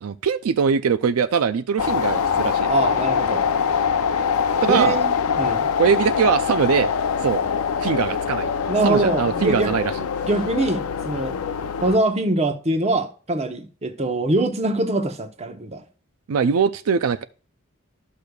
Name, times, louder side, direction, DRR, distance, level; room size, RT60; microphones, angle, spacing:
voice 1, 0.0-2.7 4.6-5.0 5.8-6.9 7.2-7.4 7.8-8.5 8.8-9.9 16.3-17.2, right 6 dB, 80° right, 0.4 m, -21 dB
sound 1, 1.8-12.0, left 6 dB, 85° left, 0.5 m, -23 dB
voice 2, 2.7-3.4 4.7-5.7 8.7-9.7 10.3-11.4 11.8-15.8, right 2 dB, 30° right, 0.8 m, -23 dB
12.0 x 6.5 x 2.3 m
head